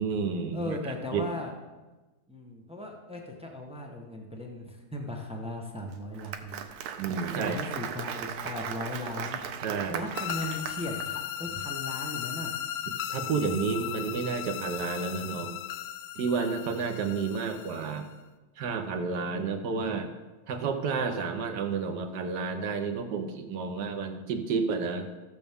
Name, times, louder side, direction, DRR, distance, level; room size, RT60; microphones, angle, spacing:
voice 1, 0.0-0.8 1.1-1.2 7.0-7.6 9.6-10.0 13.1-15.6 16.2-18.1 18.6-20.1 20.5-25.1, right 5 dB, 60° right, 6 dB, 1.3 m, -30 dB
voice 2, 0.5-1.5 2.3-6.7 7.4-9.4 9.9-12.5, left 1 dB, 10° right, 0 dB, 0.4 m, -37 dB
Applause, 5.9-11.1, right 8 dB, 90° right, 1.6 m, -37 dB
sound 1, 10.1-18.1, left 11 dB, 85° left, 1.5 m, -37 dB
15.0 x 6.8 x 3.6 m, 1.2 s
omnidirectional pair, 2.3 m